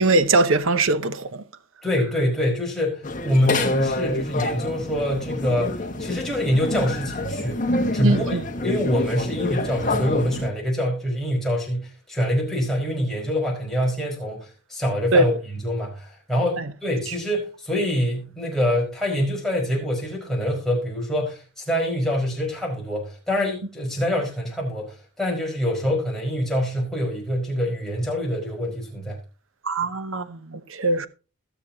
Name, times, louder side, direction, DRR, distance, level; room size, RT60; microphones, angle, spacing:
voice 1, 0.0-1.4 8.0-8.4 15.1-15.4 16.6-16.7 17.1-17.2 29.6-31.1, right 2 dB, 65° right, 0.9 m, -21 dB
voice 2, 1.8-7.6 7.9-8.4 8.6-15.3 15.6-29.2, equal, ahead, 5.1 m, -25 dB
sound 1, 3.0-10.5, left 2 dB, 35° left, 1.4 m, -27 dB
21.0 x 7.1 x 2.9 m
head